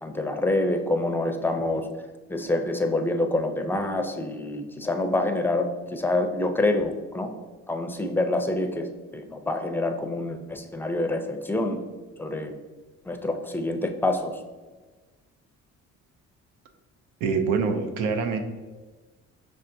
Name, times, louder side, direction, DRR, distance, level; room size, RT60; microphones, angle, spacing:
voice 1, 0.0-1.9 2.3-7.3 7.7-11.8 12.2-12.5 13.0-14.4, left 2 dB, 5° left, 5 dB, 0.5 m, -26 dB
voice 2, 17.2-18.4, right 5 dB, 90° right, 7 dB, 0.6 m, -25 dB
5.5 x 3.3 x 2.6 m, 1.3 s
cardioid pair, 90°, 30 cm